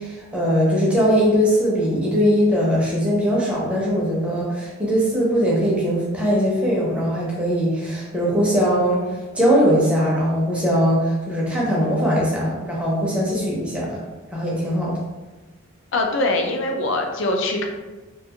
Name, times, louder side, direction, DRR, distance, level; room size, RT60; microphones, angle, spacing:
voice 1, 0.0-9.0 9.3-14.0 14.3-15.0, equal, 5° right, -6 dB, 0.6 m, -20 dB
voice 2, 15.9-17.7, left 2 dB, 60° left, 3 dB, 0.4 m, -22 dB
2.4 x 2.3 x 2.8 m, 1.2 s
head